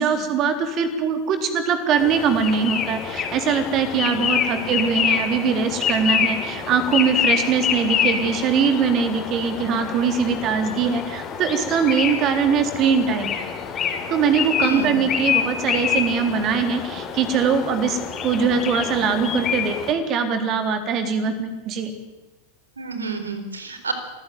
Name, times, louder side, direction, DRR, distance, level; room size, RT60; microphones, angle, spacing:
voice 1, 0.0-13.3 14.1-22.0, right 6 dB, 35° right, 8 dB, 3.8 m, -22 dB
sound 1, 2.0-19.9, left 7 dB, 25° left, 4.1 m, -26 dB
voice 2, 14.6-15.0 22.8-23.9, right 4 dB, 75° right, 8 dB, 4.1 m, -30 dB
26.5 x 16.0 x 9.5 m, 1.1 s
figure-of-eight pair, 90°, 0 cm